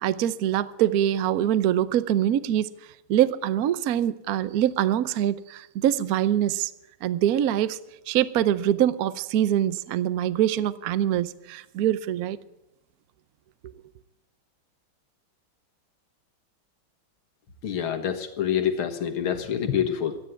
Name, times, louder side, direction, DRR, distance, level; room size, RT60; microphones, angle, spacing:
voice 1, 0.0-2.7 3.1-6.7 7.0-7.8 8.1-12.4, right 11 dB, 70° right, 0.8 m, -24 dB
voice 2, 17.6-20.2, left 9 dB, 75° left, 2.2 m, -26 dB
12.5 x 10.0 x 9.3 m
omnidirectional pair, 2.4 m